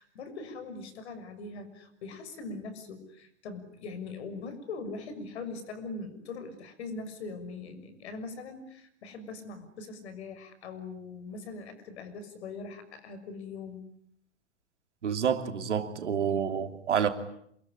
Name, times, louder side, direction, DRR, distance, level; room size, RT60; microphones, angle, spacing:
voice 1, 0.0-13.8, left 3 dB, 65° left, 6.4 m, -41 dB
voice 2, 15.0-17.1, right 7 dB, 75° right, 3.1 m, -28 dB
28.0 x 21.5 x 10.0 m
hypercardioid pair, 105°, 35 cm